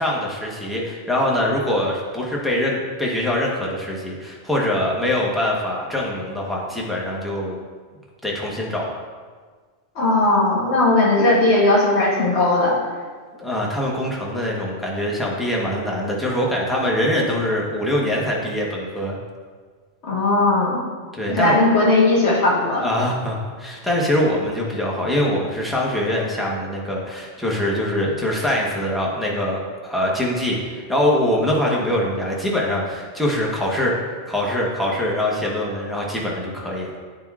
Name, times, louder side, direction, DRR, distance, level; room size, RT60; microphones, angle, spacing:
voice 1, 0.0-7.6 8.2-8.9 13.3-19.2 21.1-21.6 22.7-33.9 34.3-36.9, left 1 dB, ahead, -4 dB, 0.8 m, -23 dB
voice 2, 9.9-12.7 20.1-20.8 21.3-22.9, left 2 dB, 70° left, -5 dB, 1.5 m, -17 dB
9.2 x 4.6 x 2.4 m, 1.5 s
omnidirectional pair, 1.2 m